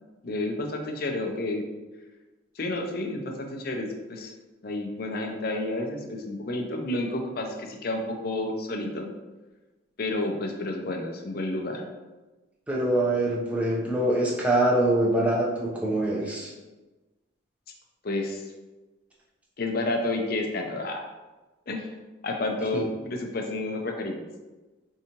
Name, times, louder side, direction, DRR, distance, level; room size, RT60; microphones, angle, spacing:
voice 1, 0.2-1.6 2.6-4.3 4.6-9.1 10.0-11.8 18.0-18.4 19.6-21.0 21.7-21.9 22.2-24.2, left 2 dB, 50° left, 3 dB, 0.5 m, -30 dB
voice 2, 12.7-16.5 22.7-22.8, right 1 dB, 5° right, -4 dB, 0.6 m, -24 dB
4.7 x 2.7 x 2.9 m, 1.2 s
head